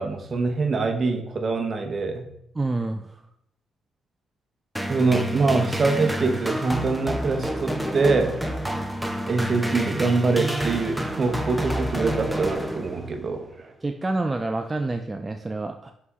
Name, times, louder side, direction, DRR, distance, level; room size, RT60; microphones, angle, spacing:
voice 1, 0.0-2.3 4.9-8.5 9.3-13.7, right 3 dB, 45° right, 6 dB, 0.9 m, -24 dB
voice 2, 2.6-3.2 13.8-15.9, right 2 dB, 25° right, 6 dB, 0.4 m, -28 dB
sound 1, 4.8-13.3, equal, ahead, 0.7 m, -29 dB
6.7 x 4.1 x 3.6 m, 0.76 s
cardioid pair, 75°, 0 cm